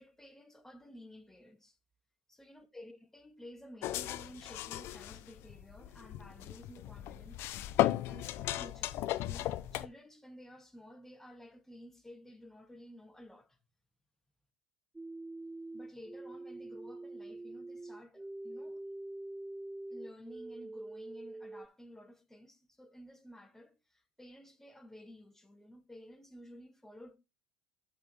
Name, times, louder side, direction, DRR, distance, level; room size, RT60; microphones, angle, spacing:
voice 1, 0.0-1.8 2.3-7.4 8.0-13.6 15.7-18.8 19.9-27.2, equal, 5° left, 1.9 m, -53 dB
sound 1, 3.8-9.9, left 14 dB, 60° left, 0.7 m, -35 dB
sound 2, 15.0-21.7, right 2 dB, 10° right, 0.4 m, -45 dB
7.7 x 6.8 x 3.3 m
hypercardioid pair, 70°, 5 cm